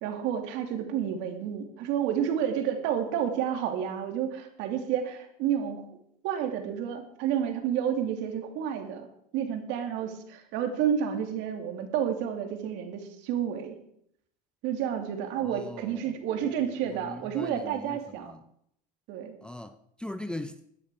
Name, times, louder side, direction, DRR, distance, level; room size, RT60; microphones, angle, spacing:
voice 1, 0.0-5.8 6.2-9.1 9.3-13.8 14.6-18.3 19.1-19.4, right 9 dB, 60° right, 2.7 m, -30 dB
voice 2, 15.3-18.4 19.4-20.6, left 1 dB, 5° left, 0.7 m, -41 dB
16.0 x 9.9 x 4.8 m
supercardioid pair, 110°, 21 cm